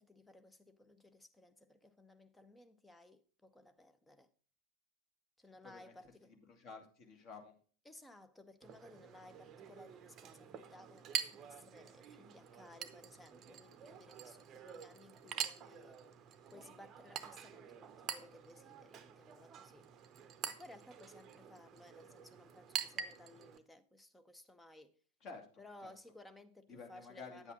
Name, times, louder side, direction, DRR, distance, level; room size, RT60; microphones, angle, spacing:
voice 1, 0.0-4.3 5.4-6.4 7.8-16.0 16.5-19.9 20.6-25.0 25.6-27.5, left 1 dB, 5° left, 0.8 m, -59 dB
voice 2, 6.2-7.5 25.2-25.5 25.8-25.9 26.7-27.5, left 4 dB, 35° left, 2.1 m, -51 dB
Chink clink, 8.6-23.6, right 8 dB, 30° right, 0.8 m, -46 dB
9.4 x 8.2 x 3.7 m
figure-of-eight pair, 90°, 0 cm